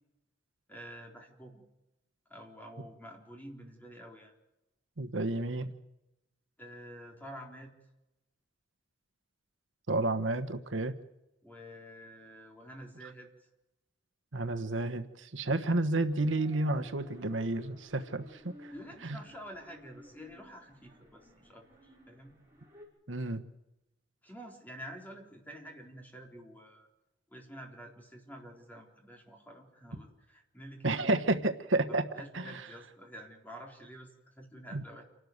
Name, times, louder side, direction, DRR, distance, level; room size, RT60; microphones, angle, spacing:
voice 1, 0.7-1.6 2.3-4.3 6.6-7.7 11.4-13.3 18.7-22.4 24.2-26.9 27.3-31.2 31.9-35.0, equal, 10° left, 1 dB, 4.1 m, -49 dB
voice 2, 5.0-5.7 9.9-10.9 14.3-18.7 19.0-19.2 23.1-23.4 30.8-32.0 32.3-32.6 34.7-34.8, right 2 dB, 70° right, 8 dB, 1.3 m, -31 dB
sound 1, 16.0-22.9, equal, 15° right, 6.0 m, -56 dB
28.5 x 12.5 x 8.0 m, 0.92 s
head